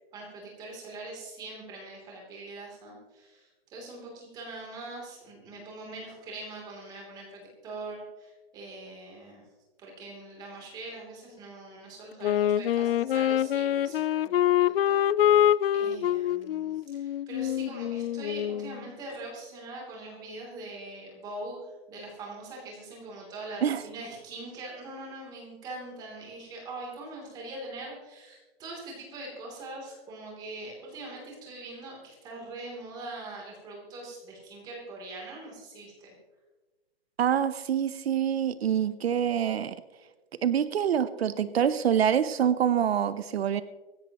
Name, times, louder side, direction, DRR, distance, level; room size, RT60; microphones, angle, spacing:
voice 1, 0.1-9.4 9.8-36.1, right 2 dB, 10° right, -1 dB, 3.1 m, -42 dB
Wind instrument woodwind instrument, 12.2-18.8, left 11 dB, 65° left, 0.4 m, -25 dB
voice 2, 37.2-39.7 40.4-43.6, right 9 dB, 80° right, 14 dB, 0.8 m, -26 dB
25.0 x 10.5 x 3.0 m, 1.2 s
hypercardioid pair, 175°, 31 cm